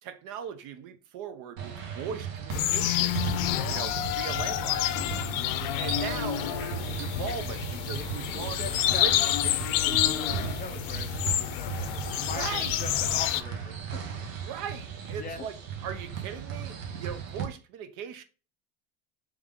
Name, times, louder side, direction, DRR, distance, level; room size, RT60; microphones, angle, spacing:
voice 1, 0.0-4.9 5.8-9.2 12.2-12.7 14.4-15.5 15.8-18.2, right 8 dB, 50° right, 0.7 m, -39 dB
sound 1, 1.6-17.4, right 7 dB, 85° right, 1.1 m, -37 dB
sound 2, 2.5-13.4, left 13 dB, 70° left, 0.6 m, -28 dB
voice 2, 3.5-3.8 8.0-9.1 9.4-11.8 12.2-14.0 15.2-15.5, left 5 dB, 25° left, 0.5 m, -41 dB
3.5 x 3.2 x 3.5 m
supercardioid pair, 115°, 39 cm